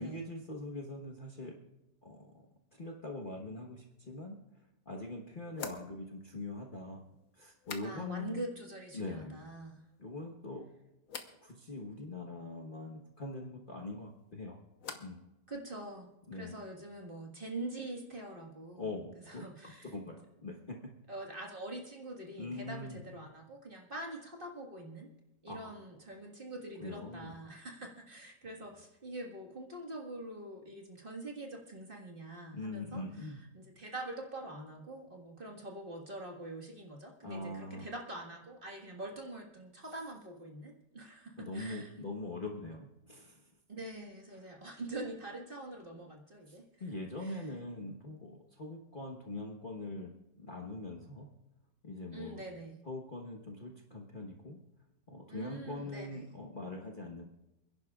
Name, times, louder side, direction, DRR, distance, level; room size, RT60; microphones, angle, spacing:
voice 1, 0.0-1.6 2.0-4.4 4.8-7.0 7.4-8.4 8.9-9.4 10.0-10.7 11.4-14.6 15.0-15.2 16.3-16.6 18.7-20.8 22.4-23.0 25.5-25.7 26.8-27.3 32.5-33.4 37.2-37.8 41.4-43.5 46.5-50.1 50.4-51.3 51.8-52.4 52.8-54.6 55.1-57.2, left 2 dB, 35° left, 0 dB, 1.2 m, -43 dB
sound 1, 4.3-4.4 5.5-8.4 8.6-9.3 9.6-10.2 11.1-11.4 13.8-15.3 15.5-16.2, left 6 dB, 55° left, 1.3 m, -49 dB
voice 2, 7.8-9.8 15.5-18.9 19.3-19.9 21.1-25.1 25.4-41.9 43.7-46.6 47.2-47.4 52.1-52.8 55.3-56.3, right 2 dB, 30° right, 0 dB, 1.8 m, -44 dB
28.5 x 10.5 x 2.4 m, 0.91 s
omnidirectional pair, 1.9 m